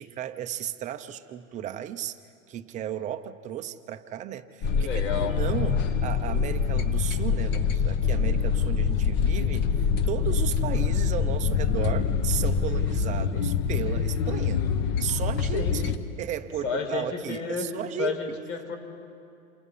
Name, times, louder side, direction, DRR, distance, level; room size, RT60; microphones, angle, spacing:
voice 1, 0.0-2.2 2.5-14.7 15.0-18.1, right 11 dB, 15° right, 8 dB, 0.6 m, -34 dB
sound 1, 4.6-16.0, left 6 dB, 25° left, 1.0 m, -25 dB
voice 2, 4.8-5.3 15.5-15.8 16.6-17.7 18.0-18.8, left 6 dB, 65° left, 4 dB, 5.5 m, -31 dB
28.5 x 28.0 x 5.6 m, 2.5 s
supercardioid pair, 150°, 42 cm